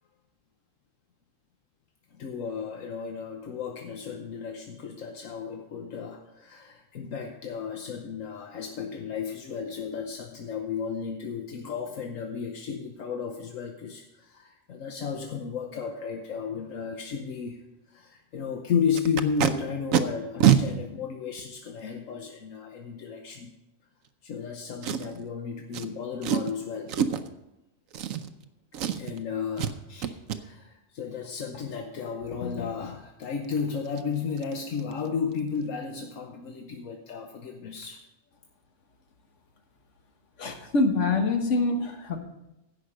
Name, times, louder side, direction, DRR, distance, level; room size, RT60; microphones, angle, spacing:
voice 1, 2.2-17.6 17.9-23.5 24.2-26.9 28.9-38.0, left 6 dB, 80° left, 3 dB, 1.3 m, -33 dB
Packing tape duct tape, 18.9-19.5 19.9-20.0 20.4-20.6 21.4-21.5 24.8-25.3 25.7-25.9 26.2-26.5 26.9-27.3 27.9-28.5 28.7-29.2 29.6-29.7 30.0-30.4 33.4-33.5 33.9-34.0 34.4-34.5 34.8-35.1 35.3-35.4, right 9 dB, 85° right, 1.1 m, -25 dB
voice 2, 40.4-42.2, left 3 dB, 65° left, 4 dB, 1.6 m, -25 dB
16.0 x 5.3 x 6.4 m, 0.94 s
omnidirectional pair, 1.3 m